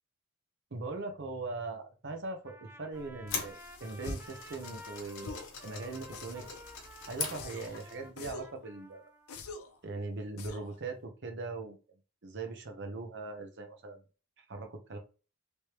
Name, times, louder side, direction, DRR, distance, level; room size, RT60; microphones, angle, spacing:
voice 1, 0.7-5.4 5.6-6.6 7.1-9.0 9.8-11.8 12.2-14.0 14.4-15.0, right 3 dB, 55° right, 5 dB, 0.8 m, -40 dB
Trumpet, 2.4-9.4, equal, 10° right, 0.4 m, -53 dB
sound 1, 2.9-8.1, left 5 dB, 60° left, 1.0 m, -42 dB
sound 2, 4.0-4.4 5.2-5.6 6.1-6.6 7.3-7.8 8.2-8.6 9.3-9.8 10.4-10.8, left 3 dB, 75° left, 0.6 m, -44 dB
3.2 x 3.2 x 2.9 m, 0.34 s
head